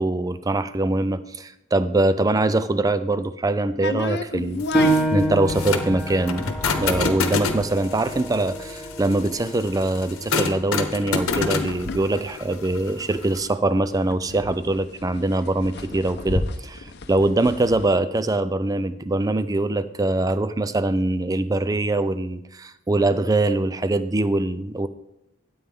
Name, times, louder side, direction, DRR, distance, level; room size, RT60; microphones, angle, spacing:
voice 1, 0.0-4.6 5.1-24.9, right 2 dB, 15° right, 13 dB, 0.4 m, -23 dB
sound 1, 3.8-13.3 13.6-13.7 13.9-17.9, left 3 dB, 55° left, 0.7 m, -33 dB
sound 2, 4.6-13.5, left 4 dB, 85° left, 1.0 m, -28 dB
Piano, 4.7-9.9 10.4-10.5 11.1-11.6, right 1 dB, 5° left, 2.0 m, -27 dB
13.0 x 8.6 x 3.5 m, 0.85 s
head